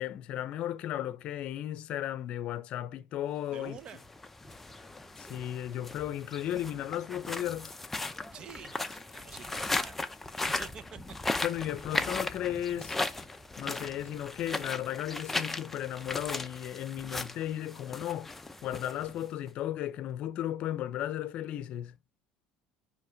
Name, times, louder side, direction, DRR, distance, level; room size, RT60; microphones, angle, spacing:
voice 1, 0.0-3.8 5.2-7.7 11.4-13.0 13.6-18.3 18.6-22.0, left 12 dB, 50° left, 0.7 m, -35 dB
voice 2, 3.5-4.0 8.3-10.0 10.4-11.0, right 7 dB, 35° right, 0.8 m, -47 dB
sound 1, 3.8-19.5, left 2 dB, 10° left, 0.6 m, -37 dB
10.0 x 3.4 x 5.7 m
cardioid pair, 135°, 2 cm